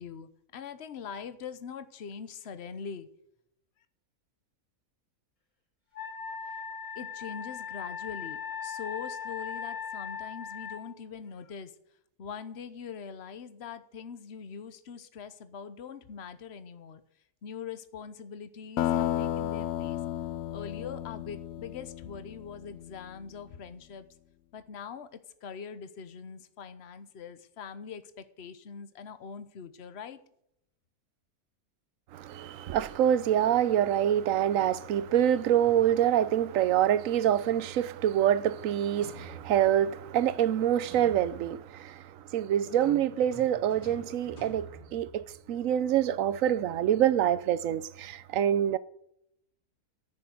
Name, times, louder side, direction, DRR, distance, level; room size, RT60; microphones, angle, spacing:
voice 1, 0.0-3.1 6.9-11.7 12.2-17.0 17.4-20.0 20.5-24.1 24.5-30.2, left 6 dB, 50° left, 1.1 m, -42 dB
Wind instrument woodwind instrument, 6.0-10.8, left 7 dB, 20° left, 4.1 m, -38 dB
sound 1, 18.8-23.1, left 12 dB, 75° left, 1.1 m, -33 dB
voice 2, 32.1-42.0 42.3-48.8, right 10 dB, 65° right, 1.0 m, -26 dB
sound 2, 35.6-36.3 39.0-39.9 40.9-41.6 42.7-45.6, right 1 dB, 90° left, 5.0 m, -48 dB
14.0 x 6.9 x 7.9 m
omnidirectional pair, 1.6 m